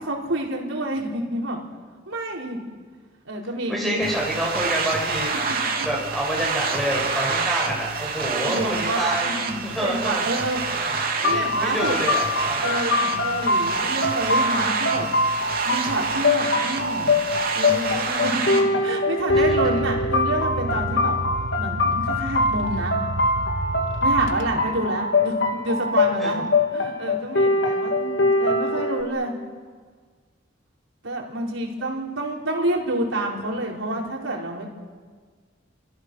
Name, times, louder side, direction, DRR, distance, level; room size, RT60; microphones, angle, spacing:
voice 1, 0.0-1.6 2.1-2.6 3.2-4.0 8.4-10.8 11.2-12.0 12.6-15.1 15.6-17.2 17.5-21.2 21.6-23.0 24.0-26.4 26.7-29.3 31.0-34.6, right 1 dB, 85° right, -1 dB, 5.1 m, -28 dB
voice 2, 3.7-5.3 5.8-9.3 9.6-10.3 10.7-12.8 19.3-19.7 24.5-24.7 26.2-26.4, right 1 dB, ahead, -3 dB, 7.2 m, -28 dB
sound 1, 4.0-18.6, right 4 dB, 50° right, 3.2 m, -28 dB
sound 2, 11.2-29.0, left 2 dB, 60° left, 3.0 m, -23 dB
sound 3, 19.3-24.9, right 1 dB, 65° right, 1.5 m, -31 dB
29.0 x 28.0 x 6.6 m, 1.6 s
head